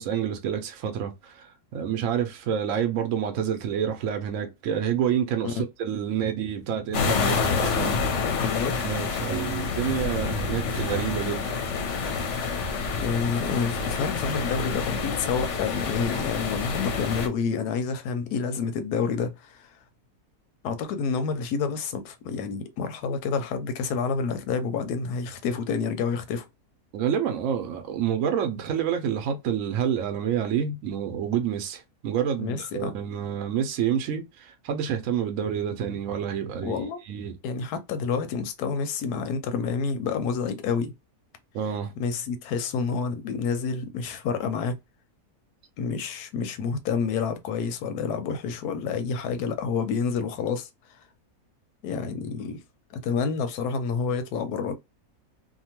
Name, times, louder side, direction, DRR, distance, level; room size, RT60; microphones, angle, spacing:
voice 1, 0.0-8.2 8.8-11.5 26.9-36.8 37.1-37.4 41.5-41.9, right 8 dB, 65° right, 0.9 m, -28 dB
sound 1, 6.9-17.3, left 5 dB, 60° left, 0.8 m, -28 dB
voice 2, 8.3-8.8 13.0-19.7 20.6-26.5 32.4-33.0 36.6-37.0 37.4-40.9 42.0-44.8 45.8-50.7 51.8-52.6 53.0-54.7, left 5 dB, 90° left, 1.1 m, -28 dB
2.8 x 2.2 x 2.8 m
omnidirectional pair, 1.6 m